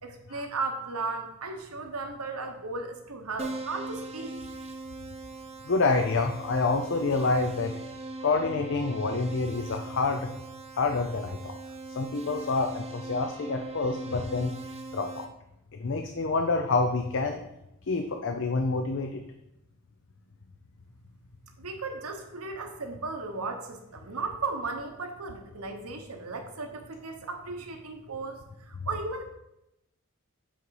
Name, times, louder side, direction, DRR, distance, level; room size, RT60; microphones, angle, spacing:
voice 1, 0.0-4.4 21.6-29.2, right 3 dB, 75° right, 4 dB, 1.1 m, -36 dB
Keyboard (musical), 3.4-15.2, right 2 dB, 30° right, 0.7 m, -40 dB
voice 2, 5.6-7.8 8.2-10.3 10.8-11.6 11.9-14.5 14.9-15.3 15.7-17.4 17.9-19.2, left 3 dB, 55° left, 5 dB, 0.5 m, -27 dB
8.0 x 4.0 x 4.8 m, 0.85 s
head